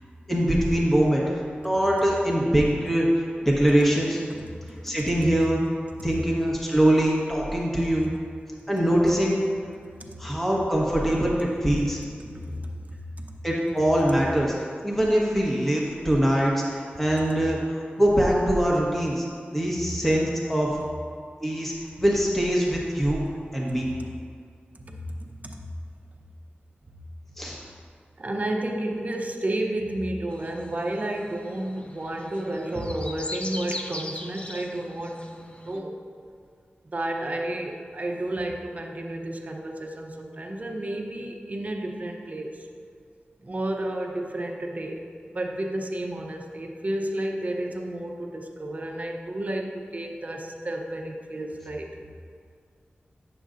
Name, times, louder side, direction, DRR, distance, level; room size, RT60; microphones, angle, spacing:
voice 1, 0.3-4.2 4.8-5.6 6.0-8.1 8.7-9.4 10.2-12.0 12.5-12.6 13.4-14.5 14.8-19.3 19.5-20.7 21.4-23.3 23.5-23.9 27.4-27.6, right 1 dB, 5° left, -4 dB, 1.2 m, -23 dB
voice 2, 4.5-5.0 10.0-10.2 12.2-13.3 24.0-24.1 24.8-25.7 28.2-36.0 36.8-42.7 43.4-45.0 45.3-51.9, right 1 dB, 40° right, 2 dB, 0.7 m, -32 dB
sound 1, 30.3-35.8, left 1 dB, 30° left, 0.5 m, -40 dB
9.1 x 6.8 x 2.6 m, 2.2 s
wide cardioid pair, 80°, 4 cm